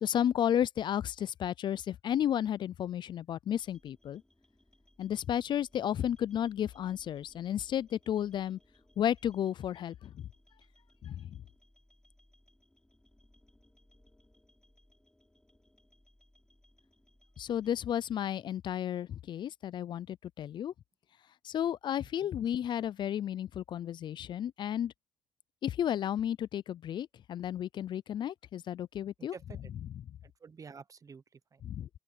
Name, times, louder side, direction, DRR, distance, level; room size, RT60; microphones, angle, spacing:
voice 1, 0.0-4.2 5.0-8.6 9.0-10.1 11.0-11.4 17.4-20.7 21.4-24.9 25.6-29.3 31.6-31.9, left 10 dB, 60° left, 0.4 m, -33 dB
sound 1, 3.6-17.7, left 1 dB, 10° left, 6.6 m, -66 dB
voice 2, 29.2-29.7 30.2-31.6, right 5 dB, 40° right, 1.0 m, -50 dB
open air
cardioid pair, 80°, 9 cm